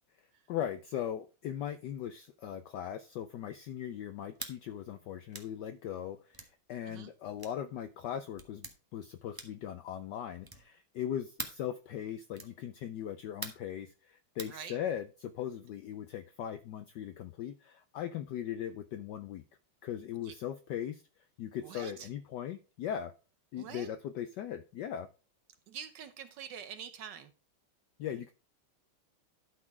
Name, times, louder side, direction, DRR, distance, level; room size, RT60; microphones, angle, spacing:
voice 1, 0.5-19.4 19.8-23.1 23.5-25.1 28.0-28.3, left 10 dB, 80° left, 11 dB, 0.9 m, -39 dB
sound 1, 4.3-4.6 5.3-5.5 6.3-6.5 7.4-7.6 8.4-8.8 9.3-9.7 10.4-10.7 11.4-11.7 12.3-12.6 13.4-13.7 14.4-14.6, right 2 dB, 25° right, 0.5 m, -43 dB
voice 2, 21.6-22.1 23.6-23.9 25.7-27.3, right 8 dB, 65° right, 11 dB, 1.2 m, -45 dB
12.0 x 4.3 x 4.8 m, 0.34 s
omnidirectional pair, 2.4 m